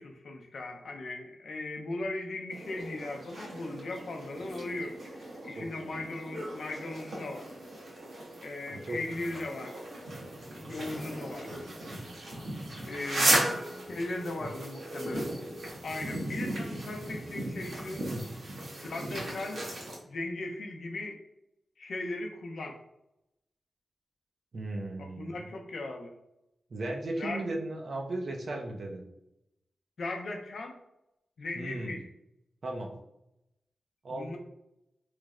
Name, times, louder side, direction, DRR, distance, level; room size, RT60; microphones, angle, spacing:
voice 1, 0.0-7.5 8.4-9.9 10.7-11.7 12.9-13.6 13.9-15.3 15.8-18.0 18.8-19.6 20.1-21.2 21.8-22.8 25.0-26.1 27.2-27.4 30.0-30.8 31.4-32.1 34.1-34.4, left 2 dB, 70° left, 3 dB, 0.5 m, -38 dB
sound 1, 2.5-20.0, right 1 dB, 80° right, 1.1 m, -36 dB
voice 2, 5.6-5.9 8.7-9.3 13.3-13.5 13.8-13.9 14.4-14.5 18.1-18.2 24.5-25.3 26.7-29.0 31.5-32.0 32.6-32.9 34.0-34.3, right 2 dB, 55° right, 1 dB, 0.5 m, -36 dB
3.1 x 2.1 x 3.6 m, 0.85 s
wide cardioid pair, 125°, 0 cm